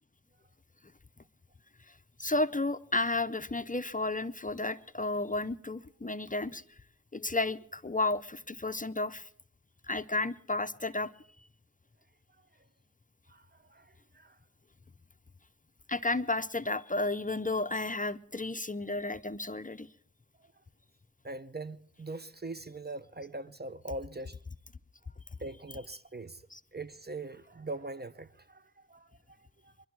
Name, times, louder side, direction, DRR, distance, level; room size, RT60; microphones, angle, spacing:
voice 1, 2.2-6.6 7.1-9.3 9.9-11.1 15.9-19.9 26.5-26.6, left 2 dB, 25° left, 0.7 m, -32 dB
voice 2, 13.3-14.4 21.2-24.4 25.4-26.4 26.7-29.1 29.6-29.7, right 2 dB, 30° right, 0.7 m, -42 dB
24.0 x 12.0 x 4.7 m
cardioid pair, 50°, 32 cm